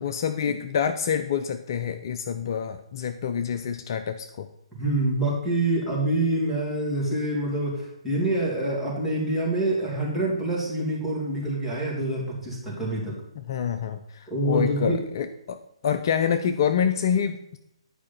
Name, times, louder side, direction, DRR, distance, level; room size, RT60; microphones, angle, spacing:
voice 1, 0.0-4.5 13.5-15.6 15.8-17.6, left 7 dB, 40° left, 9 dB, 0.5 m, -27 dB
voice 2, 4.8-13.2 14.3-15.0, right 1 dB, 5° right, -7 dB, 3.0 m, -26 dB
10.0 x 4.9 x 5.7 m, 0.86 s
figure-of-eight pair, 130°, 3 cm